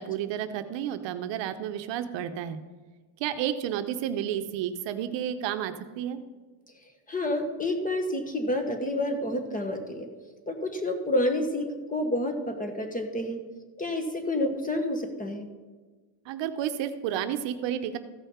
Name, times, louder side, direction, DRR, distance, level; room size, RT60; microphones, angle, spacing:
voice 1, 0.0-2.6 3.2-6.2 16.2-18.0, right 10 dB, 65° right, 9 dB, 0.9 m, -31 dB
voice 2, 7.1-10.1 10.5-13.4 13.8-15.5, left 1 dB, 15° left, 6 dB, 1.4 m, -29 dB
14.5 x 5.6 x 5.6 m, 1.3 s
cardioid pair, 115°, 48 cm